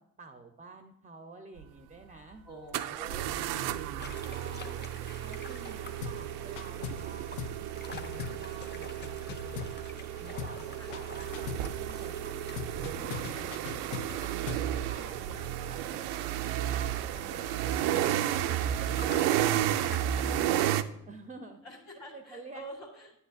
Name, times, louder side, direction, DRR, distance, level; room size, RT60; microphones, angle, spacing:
voice 1, 0.2-2.4 2.9-3.6 4.2-4.9 5.2-9.2 10.2-14.4 14.7-20.7 21.1-21.8 22.1-22.6, right 3 dB, 20° right, 7 dB, 0.6 m, -50 dB
sound 1, 1.6-1.7 2.7-20.8, right 12 dB, 65° right, 0.5 m, -32 dB
voice 2, 2.4-4.1 10.8-10.9 21.6-23.1, right 1 dB, 65° left, -7 dB, 2.2 m, -47 dB
sound 2, 4.0-20.7, left 3 dB, 25° left, 1.0 m, -50 dB
sound 3, 6.0-6.3 6.6-7.1 7.4-7.6 7.9-10.1 10.4-10.6 10.9-11.7 12.6-14.7, left 7 dB, 85° left, 0.5 m, -40 dB
9.7 x 8.1 x 2.6 m, 0.76 s
hypercardioid pair, 45°, 43 cm